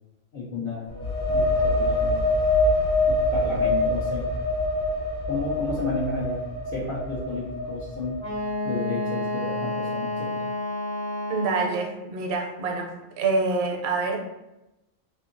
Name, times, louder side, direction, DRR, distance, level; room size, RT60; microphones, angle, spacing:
voice 1, 0.3-0.9 1.3-2.3 3.1-4.3 5.3-6.4 6.7-8.2 8.6-10.4, left 3 dB, 60° left, -7 dB, 0.8 m, -32 dB
sound 1, 0.9-8.5, left 1 dB, 30° right, 0.5 m, -25 dB
Wind instrument woodwind instrument, 8.2-11.9, left 1 dB, 85° left, 1.1 m, -30 dB
voice 2, 11.3-12.9 13.2-14.2, right 3 dB, 80° right, 1 dB, 0.8 m, -26 dB
2.6 x 2.6 x 2.5 m, 0.96 s
omnidirectional pair, 1.1 m